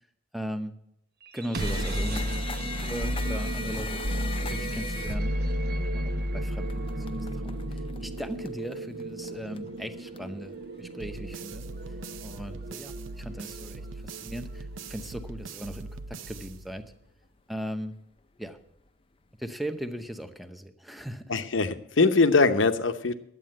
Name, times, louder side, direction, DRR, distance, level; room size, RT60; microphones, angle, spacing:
voice 1, 0.3-0.7 1.3-2.2 2.6-4.0 4.4-5.3 5.9-11.7 12.2-16.8 17.5-17.9 18.4-18.6 19.4-21.3, equal, ahead, 8 dB, 0.8 m, -38 dB
sound 1, 1.3-15.1, right 1 dB, 55° right, 0.8 m, -33 dB
sound 2, 1.6-16.9 17.7-17.9 18.2-18.9 19.5-19.6 20.0-20.1, left 4 dB, 30° left, 0.6 m, -43 dB
sound 3, 11.0-17.1, right 3 dB, 85° right, 0.6 m, -41 dB
voice 2, 21.3-23.1, left 3 dB, 80° left, 10 dB, 0.9 m, -22 dB
11.0 x 8.4 x 7.7 m, 0.76 s
head